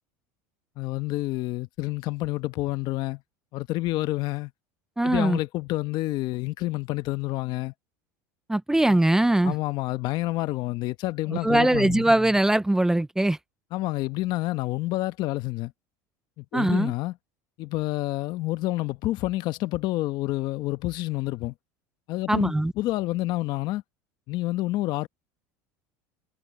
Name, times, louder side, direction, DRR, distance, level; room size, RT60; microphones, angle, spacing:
voice 1, 0.8-3.2 3.5-4.5 5.0-7.7 9.4-12.0 13.7-15.7 16.4-17.1 17.6-21.5 22.1-23.8 24.3-25.1, left 18 dB, 55° left, 1.2 m, -28 dB
voice 2, 5.0-5.4 8.5-9.5 11.3-13.4 16.5-16.9 22.3-22.7, right 1 dB, 5° right, 0.7 m, -21 dB
supercardioid pair, 120°, 9 cm